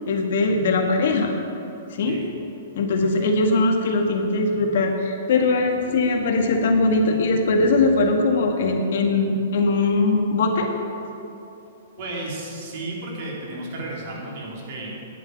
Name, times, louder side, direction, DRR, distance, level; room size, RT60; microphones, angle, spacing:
voice 1, 0.1-1.3 1.9-2.2 2.7-10.7, left 3 dB, 65° left, 3 dB, 1.8 m, -21 dB
voice 2, 12.0-15.0, right 2 dB, 55° right, -3 dB, 3.6 m, -33 dB
10.0 x 9.4 x 7.9 m, 2.8 s
hypercardioid pair, 140°, 0 cm